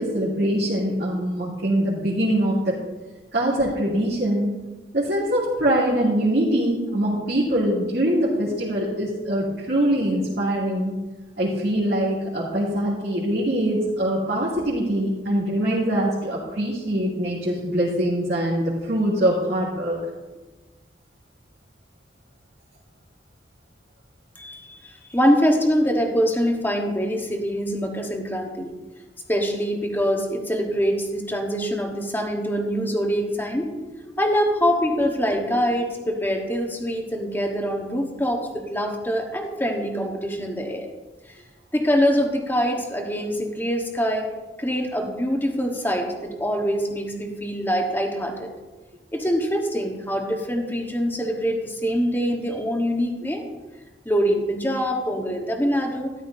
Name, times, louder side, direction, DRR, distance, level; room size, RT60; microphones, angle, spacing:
voice 1, 0.0-2.8 3.3-4.6 4.9-10.9 11.4-20.0, right 1 dB, 60° right, -9 dB, 2.7 m, -23 dB
voice 2, 24.4-24.8 25.1-28.7 29.3-33.7 34.2-40.9 41.7-44.3 44.6-48.5 49.1-53.4 54.0-56.1, equal, 10° left, 2 dB, 1.2 m, -24 dB
13.5 x 11.0 x 2.7 m, 1.2 s
head